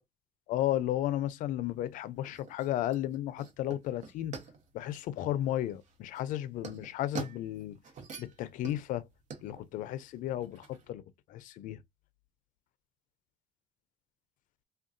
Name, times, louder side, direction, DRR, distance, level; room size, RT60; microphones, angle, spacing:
voice 1, 0.5-4.4 4.7-7.8 8.2-9.1 9.4-11.0 11.3-11.8, left 13 dB, 70° left, 0.4 m, -33 dB
sound 1, 1.6-10.9, right 5 dB, 60° right, 0.9 m, -47 dB
3.5 x 2.3 x 2.5 m
cardioid pair, 95°, 14 cm